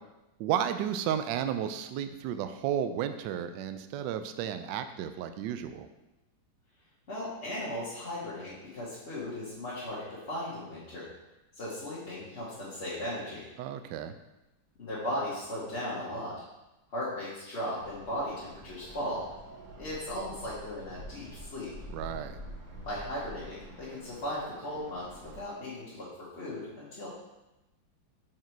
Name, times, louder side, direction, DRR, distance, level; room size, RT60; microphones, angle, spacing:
voice 1, 0.4-5.9 13.6-14.1 21.9-22.4, right 9 dB, 75° right, 9 dB, 1.0 m, -33 dB
voice 2, 7.1-11.1 11.5-13.5 14.8-16.3 16.9-19.3 19.8-21.7 22.8-26.1 26.3-27.1, left 1 dB, 35° left, -9 dB, 1.5 m, -37 dB
sound 1, 17.8-25.4, right 1 dB, 45° right, 1.2 m, -47 dB
6.0 x 4.8 x 4.5 m, 0.99 s
omnidirectional pair, 2.3 m